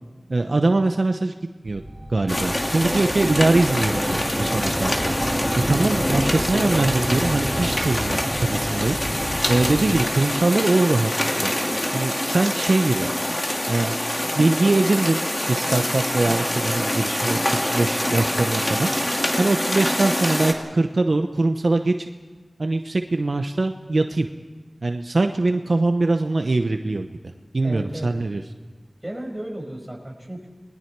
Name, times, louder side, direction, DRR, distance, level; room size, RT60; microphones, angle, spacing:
voice 1, 0.3-1.3 1.6-1.8 2.1-5.1 5.7-9.0 9.5-11.1 11.4-11.5 11.9-13.1 13.7-14.0 14.4-15.2 15.5-18.9 19.4-22.1 22.6-24.3 24.8-27.1 27.5-28.4, right 2 dB, 65° right, 6 dB, 0.9 m, -22 dB
sound 1, 1.7-10.1, right 1 dB, 30° right, 2.7 m, -31 dB
sound 2, 2.3-20.5, left 1 dB, 25° left, 2.5 m, -25 dB
voice 2, 27.6-28.1 29.0-30.5, right 1 dB, 15° right, 0 dB, 5.8 m, -34 dB
28.5 x 20.5 x 4.7 m, 1.3 s
wide cardioid pair, 60°, 0 cm